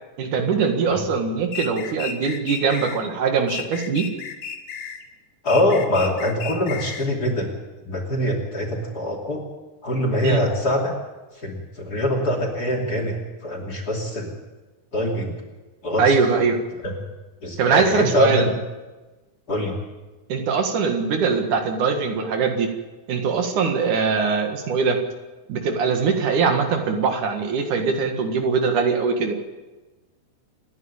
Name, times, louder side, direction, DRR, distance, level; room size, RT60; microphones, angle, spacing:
voice 1, 0.2-4.1 10.2-10.4 16.0-16.6 17.6-18.5 20.3-22.7 23.1-25.0 25.5-29.4, right 5 dB, 70° right, 5 dB, 3.4 m, -22 dB
sound 1, 1.5-3.0 3.5-5.0 5.5-7.1, left 7 dB, 60° left, 2.5 m, -33 dB
voice 2, 5.4-7.5 7.9-9.4 9.8-10.9 11.4-13.1 13.4-14.3 14.9-15.4 15.8-16.2 16.8-16.9 17.4-18.5 19.5-19.8, left 1 dB, 30° left, 0 dB, 3.2 m, -23 dB
28.0 x 10.5 x 8.9 m, 1.2 s
omnidirectional pair, 3.7 m